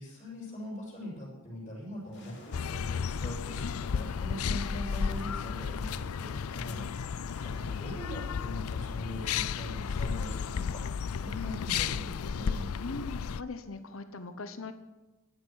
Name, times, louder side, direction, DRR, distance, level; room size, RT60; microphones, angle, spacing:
voice 1, 0.0-12.7, left 1 dB, 30° left, -10 dB, 6.8 m, -42 dB
sound 1, 2.0-10.1, left 1 dB, 55° left, 3.6 m, -57 dB
sound 2, 2.5-13.4, left 6 dB, 90° left, 0.5 m, -33 dB
voice 2, 12.8-14.7, left 3 dB, 70° left, 9 dB, 1.0 m, -40 dB
14.5 x 12.5 x 6.4 m, 1.1 s
head